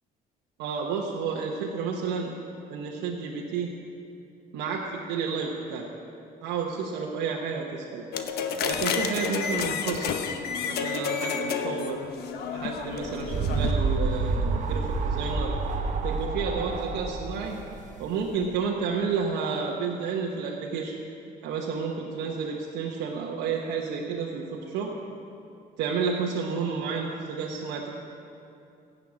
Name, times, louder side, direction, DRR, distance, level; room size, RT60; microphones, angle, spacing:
voice 1, 0.6-2.3 2.7-3.7 4.5-5.9 6.4-8.0 8.6-10.2 10.6-12.0 12.5-15.5 16.0-17.6 18.0-20.9 21.4-24.9 25.8-27.9, right 5 dB, 85° right, -2 dB, 1.2 m, -31 dB
sound 1, 8.1-13.7, left 6 dB, 70° left, 1.0 m, -30 dB
sound 2, 12.8-18.4, right 3 dB, 45° right, 1.0 m, -28 dB
15.0 x 6.7 x 8.6 m, 2.7 s
cardioid pair, 110°, 17 cm